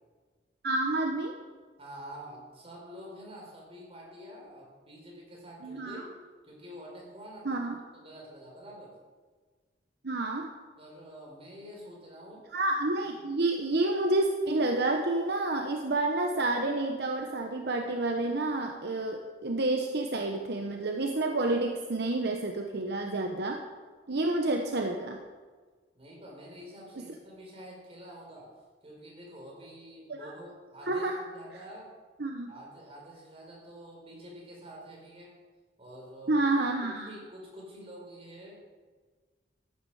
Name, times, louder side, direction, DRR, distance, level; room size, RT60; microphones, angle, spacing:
voice 1, 0.6-1.3 5.6-6.0 7.4-7.7 10.0-10.5 12.5-23.6 24.1-25.2 30.1-30.3 30.9-31.2 32.2-32.5 36.3-37.1, right 2 dB, 65° right, 3 dB, 1.1 m, -29 dB
voice 2, 1.8-6.1 6.4-9.0 10.8-12.5 12.9-13.3 25.9-28.5 28.8-31.9 32.5-35.4 35.8-36.5 36.8-38.6, equal, 35° right, -2 dB, 5.0 m, -47 dB
14.5 x 12.0 x 5.0 m, 1.4 s
head